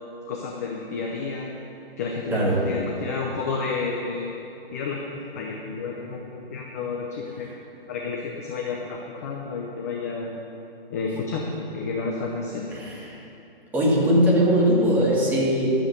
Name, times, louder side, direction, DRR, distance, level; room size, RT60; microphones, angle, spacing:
voice 1, 0.3-1.5 2.0-4.3 4.7-5.0 5.4-7.5 7.9-10.4 10.9-12.7, left 4 dB, 15° left, -1 dB, 0.6 m, -30 dB
voice 2, 2.3-2.7 12.7-13.2 13.7-15.7, equal, 5° right, -6 dB, 1.5 m, -20 dB
13.0 x 7.4 x 6.6 m, 2.8 s
hypercardioid pair, 155°, 30 cm